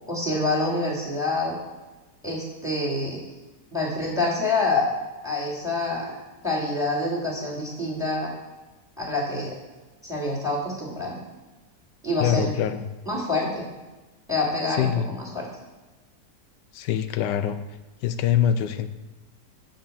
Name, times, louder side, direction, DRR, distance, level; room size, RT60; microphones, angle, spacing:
voice 1, 0.1-1.6 2.2-3.2 3.7-4.8 5.2-6.1 6.4-8.3 9.0-9.6 10.0-11.2 12.0-12.5 13.1-13.7 14.3-15.5, left 2 dB, ahead, -5 dB, 3.0 m, -26 dB
voice 2, 12.2-12.8 14.8-15.1 16.7-17.6 18.0-18.9, left 9 dB, 90° left, 11 dB, 1.3 m, -24 dB
9.4 x 5.3 x 7.1 m, 1.2 s
omnidirectional pair, 1.8 m